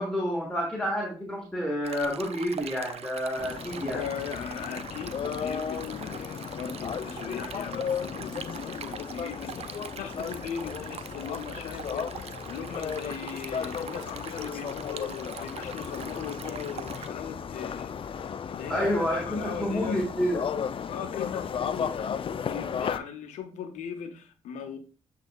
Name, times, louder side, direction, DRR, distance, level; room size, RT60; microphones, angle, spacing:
voice 1, 0.0-4.0 18.7-20.4, equal, 5° left, 1.3 m, -29 dB
Stream, 1.8-17.1, right 8 dB, 55° right, 0.4 m, -43 dB
sound 1, 3.4-23.0, left 7 dB, 45° left, 0.4 m, -35 dB
voice 2, 3.8-20.0 20.9-24.8, left 7 dB, 75° left, 0.7 m, -39 dB
8.0 x 2.7 x 2.3 m
hypercardioid pair, 40°, 13 cm